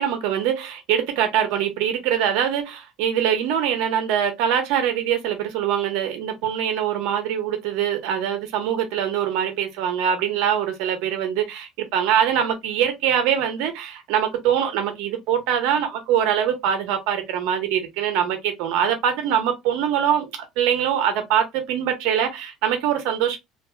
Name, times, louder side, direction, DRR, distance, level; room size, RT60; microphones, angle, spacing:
voice 1, 0.0-23.4, right 9 dB, 80° right, 0.9 m, -23 dB
2.7 x 2.6 x 2.3 m
cardioid pair, 115°, 0 cm